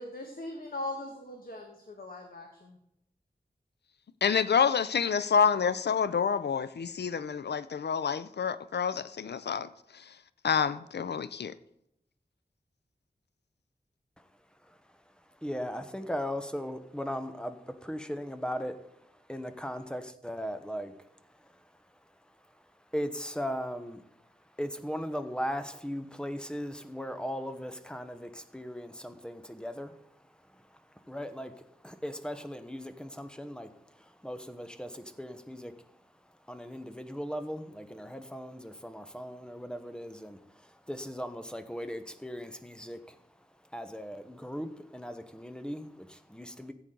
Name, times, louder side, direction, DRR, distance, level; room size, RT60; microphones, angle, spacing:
voice 1, 0.0-2.8, left 1 dB, 60° left, 1.4 m, -40 dB
voice 2, 4.2-10.1 10.4-11.5, left 6 dB, 90° left, 0.4 m, -28 dB
voice 3, 15.3-21.8 22.2-22.6 22.9-24.1 24.6-35.9 36.5-43.3 43.7-46.7, equal, 5° left, 0.9 m, -38 dB
15.0 x 8.3 x 3.8 m
wide cardioid pair, 80°, 17 cm